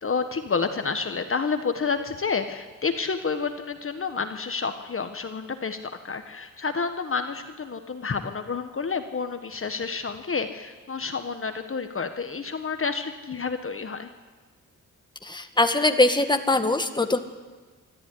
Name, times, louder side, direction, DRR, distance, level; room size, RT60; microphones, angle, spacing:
voice 1, 0.0-14.1, left 5 dB, 40° left, 8 dB, 1.4 m, -29 dB
voice 2, 15.2-17.2, left 2 dB, 15° left, 7 dB, 1.8 m, -22 dB
25.0 x 13.5 x 9.9 m, 1.4 s
cardioid pair, 85°, 33 cm